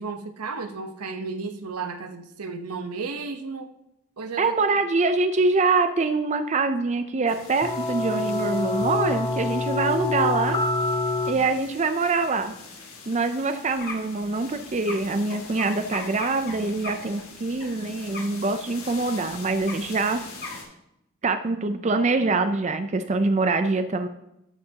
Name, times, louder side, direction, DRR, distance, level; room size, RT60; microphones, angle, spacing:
voice 1, 0.0-3.7 4.2-4.5 11.3-11.4, right 4 dB, 85° right, 7 dB, 1.0 m, -33 dB
voice 2, 4.4-10.6 11.3-12.6 13.1-20.2 21.2-24.1, right 3 dB, 30° right, 9 dB, 0.4 m, -24 dB
sound 1, 7.3-20.6, left 4 dB, 65° left, 2.3 m, -44 dB
sound 2, 7.6-11.3, left 2 dB, 15° left, 0.7 m, -26 dB
sound 3, 13.6-17.7 18.0-18.5 18.9-19.0 19.2-19.4 19.7-20.6, left 2 dB, 40° left, 1.5 m, -39 dB
13.0 x 7.0 x 2.8 m, 0.84 s
head